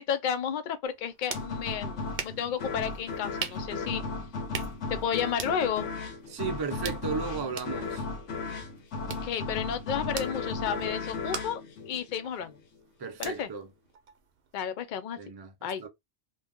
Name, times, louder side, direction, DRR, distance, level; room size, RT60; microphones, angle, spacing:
voice 1, 0.0-4.0 4.9-5.9 9.1-12.5 13.2-13.5 14.5-15.2 15.6-15.8, left 8 dB, 55° left, 0.5 m, -32 dB
sound 1, 0.8-14.6, right 6 dB, 60° right, 0.7 m, -44 dB
sound 2, 1.3-12.6, left 3 dB, 80° left, 1.1 m, -36 dB
voice 2, 6.3-8.1 13.0-13.7 15.2-15.5 15.8-15.9, right 5 dB, 35° right, 0.3 m, -34 dB
2.7 x 2.3 x 3.5 m
omnidirectional pair, 1.2 m